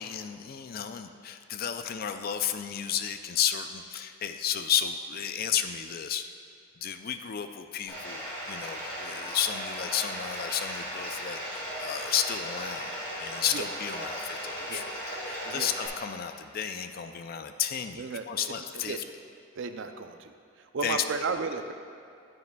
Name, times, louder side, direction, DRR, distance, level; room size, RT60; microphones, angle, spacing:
voice 1, 0.0-6.3 6.8-12.9 13.2-19.0 20.8-21.2, left 9 dB, 45° left, 9 dB, 0.4 m, -32 dB
Bathtub (filling or washing), 7.9-15.9, equal, 20° left, 1.7 m, -37 dB
voice 2, 18.0-18.6 18.8-19.0 19.6-20.3 20.7-21.7, right 4 dB, 60° right, 7 dB, 0.5 m, -34 dB
9.7 x 9.2 x 2.3 m, 2.6 s
head